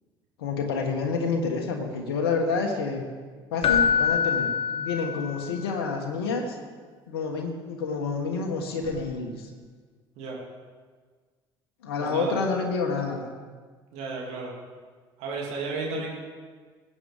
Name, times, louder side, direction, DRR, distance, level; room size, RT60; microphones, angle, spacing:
voice 1, 0.4-3.0 3.5-6.5 7.1-9.5 11.8-13.2 15.9-16.1, left 4 dB, 75° left, 2 dB, 1.3 m, -28 dB
Keyboard (musical), 3.6-5.6 8.8-9.0, left 7 dB, 45° left, 1.0 m, -25 dB
voice 2, 12.0-12.3 13.9-14.5 15.2-16.1, right 4 dB, 60° right, -3 dB, 2.7 m, -33 dB
19.5 x 8.6 x 3.5 m, 1.5 s
figure-of-eight pair, 55°, 13 cm